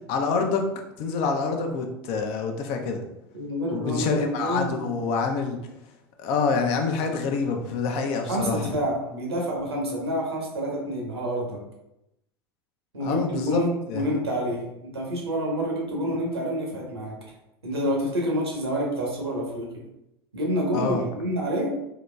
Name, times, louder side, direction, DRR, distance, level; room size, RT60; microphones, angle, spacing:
voice 1, 0.1-0.6 1.0-3.0 3.7-5.6 6.2-8.8 13.0-13.6 13.9-14.1 20.7-21.0, left 5 dB, 45° left, 4 dB, 0.6 m, -26 dB
voice 2, 3.3-4.9 8.3-11.6 12.9-17.1 17.6-19.7 20.3-21.7, equal, 80° right, -2 dB, 1.1 m, -28 dB
3.9 x 2.9 x 2.2 m, 0.86 s
figure-of-eight pair, 80°, 13 cm